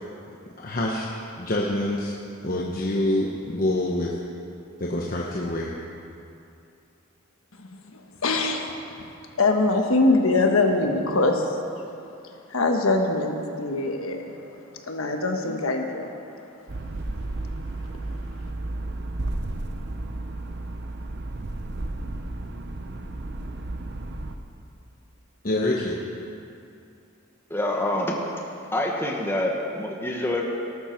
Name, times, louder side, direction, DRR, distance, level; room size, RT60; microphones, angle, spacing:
voice 1, 0.6-1.1 1.4-2.1 2.4-4.1 4.8-5.7 25.4-26.0, left 1 dB, 40° left, -2 dB, 1.0 m, -26 dB
voice 2, 7.6-8.7 9.4-11.5 12.5-14.4 14.9-16.1, left 2 dB, 75° left, 3 dB, 1.3 m, -23 dB
sound 1, 16.7-24.3, right 2 dB, 50° right, 0.8 m, -33 dB
voice 3, 27.5-30.4, left 1 dB, 10° left, -1 dB, 1.3 m, -27 dB
18.0 x 12.0 x 4.6 m, 2.6 s
head